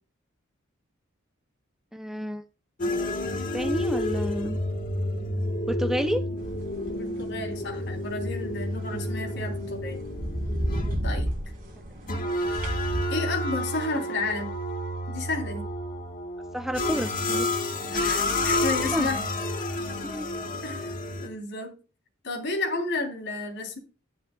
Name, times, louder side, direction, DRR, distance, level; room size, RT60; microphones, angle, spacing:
voice 1, 1.9-2.4 3.5-4.6 5.7-6.2 16.5-17.6 18.9-19.1 20.0-20.3, equal, ahead, 7 dB, 0.5 m, -30 dB
sound 1, 2.8-21.3, left 1 dB, 40° left, 1.5 m, -30 dB
sound 2, 6.4-13.0, equal, 45° right, 3.4 m, -34 dB
voice 2, 6.9-10.0 11.0-11.3 13.1-14.5 15.1-15.7 17.9-19.2 20.6-20.9 21.2-21.7 22.2-23.8, left 3 dB, 60° left, 3 dB, 3.4 m, -32 dB
11.5 x 10.5 x 2.3 m, 0.32 s
head